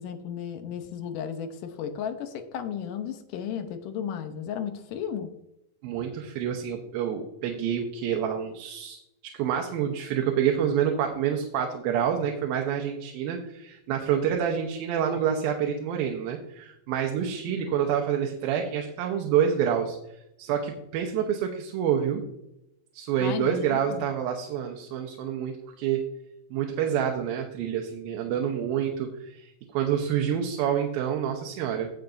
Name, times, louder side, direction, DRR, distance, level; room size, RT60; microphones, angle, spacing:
voice 1, 0.0-5.3 17.5-17.8 23.2-24.1, left 8 dB, 75° left, 7 dB, 2.3 m, -34 dB
voice 2, 5.8-9.0 9.3-20.0 20.4-22.2 22.9-26.0 26.5-31.9, right 8 dB, 90° right, 2 dB, 2.7 m, -27 dB
17.0 x 5.9 x 2.6 m, 0.83 s
omnidirectional pair, 4.1 m